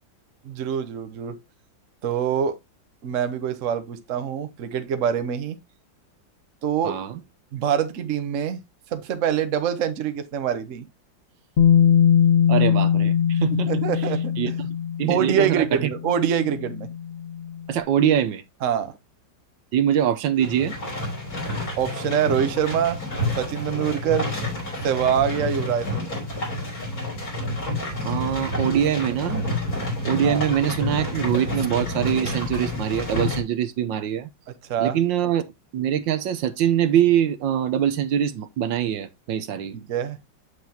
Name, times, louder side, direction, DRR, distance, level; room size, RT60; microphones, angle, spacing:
voice 1, 0.4-1.4 2.0-2.6 3.0-5.6 6.6-7.0 7.5-8.6 8.9-10.8 13.7-14.5 15.1-16.9 18.6-18.9 21.8-23.0 23.4-24.3 24.8-26.1 30.2-30.4 34.5-35.0 39.7-40.2, right 8 dB, 50° right, 1.1 m, -25 dB
voice 2, 6.8-7.2 12.5-13.7 14.4-15.9 17.7-18.4 19.7-20.8 28.0-29.4 30.0-34.3 34.8-35.5 35.7-39.7, right 10 dB, 80° right, 1.4 m, -23 dB
Bass guitar, 11.6-17.6, left 8 dB, 70° left, 0.6 m, -21 dB
sound 1, 20.4-33.4, left 1 dB, 50° left, 3.8 m, -29 dB
7.9 x 6.7 x 2.8 m
omnidirectional pair, 2.0 m